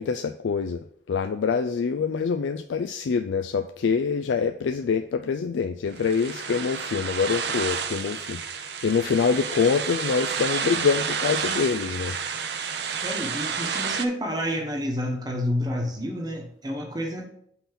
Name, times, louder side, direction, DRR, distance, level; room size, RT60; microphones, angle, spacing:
voice 1, 0.0-12.2, left 5 dB, 90° left, 8 dB, 0.4 m, -25 dB
sound 1, 5.9-14.1, right 6 dB, 65° right, 0.6 m, -30 dB
voice 2, 13.0-17.3, equal, 20° right, 2 dB, 1.0 m, -29 dB
5.8 x 4.2 x 5.7 m, 0.67 s
head